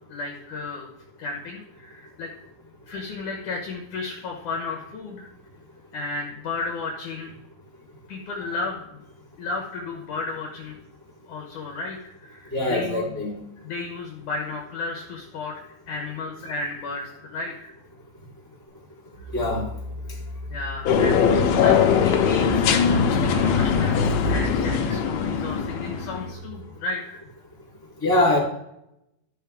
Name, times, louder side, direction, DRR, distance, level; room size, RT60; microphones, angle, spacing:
voice 1, 0.1-0.9 1.2-2.3 2.9-5.3 5.9-7.3 8.1-9.0 9.4-10.8 11.3-13.3 13.6-15.5 15.9-17.7 20.5-27.0, left 3 dB, 65° left, 0 dB, 2.3 m, -33 dB
voice 2, 12.5-13.4 19.3-19.7 22.3-22.6 28.0-28.4, left 1 dB, 5° left, -5 dB, 3.0 m, -23 dB
sound 1, 19.1-26.7, equal, 90° right, 3.8 m, -40 dB
sound 2, 20.8-26.2, left 6 dB, 85° left, 2.7 m, -21 dB
13.0 x 6.5 x 3.5 m, 0.81 s
omnidirectional pair, 4.3 m